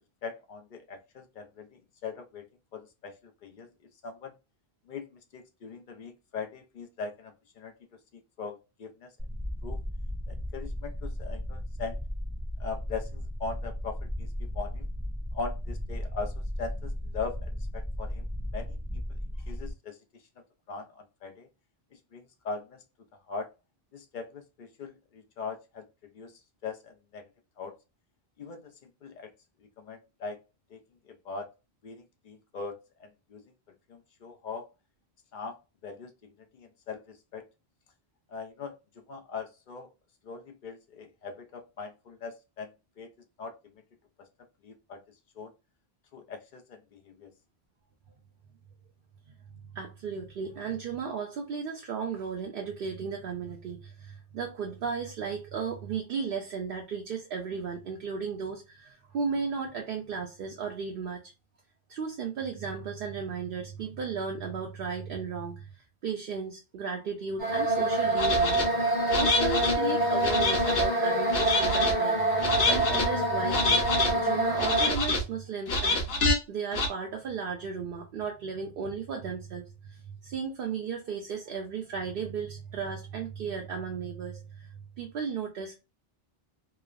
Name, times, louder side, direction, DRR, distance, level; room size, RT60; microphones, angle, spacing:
voice 1, 0.2-2.5 2.7-3.7 4.0-4.3 4.9-7.7 8.4-9.1 9.6-9.8 10.3-12.0 12.6-14.3 14.5-14.9 15.3-18.8 19.5-20.2 20.7-21.5 22.1-22.8 23.3-23.5 23.9-27.3 27.6-27.7 28.4-29.3 29.8-30.4 30.7-30.8 31.1-31.5 31.8-32.7 33.0-33.4 33.9-34.7 35.3-35.6 35.8-37.5 38.3-39.9 40.2-43.1 43.4-43.7 44.2-44.3 44.6-45.0 45.4-45.5 46.1-47.3, left 4 dB, 60° left, 0.6 m, -41 dB
sound 1, 9.2-19.7, equal, 15° right, 0.4 m, -35 dB
voice 2, 49.7-61.2 61.9-76.2 76.5-84.7 85.0-85.7, right 5 dB, 65° right, 0.7 m, -35 dB
sound 2, 67.4-74.9, right 1 dB, 25° left, 0.8 m, -26 dB
sound 3, 68.2-68.6 69.1-69.8 70.2-70.9 71.3-71.9 72.4-73.1 73.5-74.1 74.6-75.2 75.7-76.4 76.7-76.9, left 2 dB, 75° left, 1.0 m, -26 dB
3.0 x 2.0 x 2.3 m
omnidirectional pair, 1.1 m